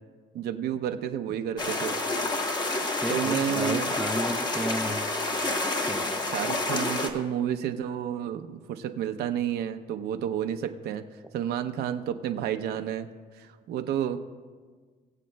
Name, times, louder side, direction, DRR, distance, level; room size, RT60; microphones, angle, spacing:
voice 1, 0.3-2.0 3.1-3.9 6.3-11.0 11.3-13.1 13.3-14.2, right 9 dB, 70° right, 7 dB, 0.6 m, -30 dB
sound 1, 1.6-7.1, left 2 dB, 25° left, 1.0 m, -29 dB
voice 2, 3.0-5.1 5.8-6.3, right 1 dB, ahead, 6 dB, 0.4 m, -33 dB
22.0 x 7.5 x 2.2 m, 1.5 s
cardioid pair, 110°, 17 cm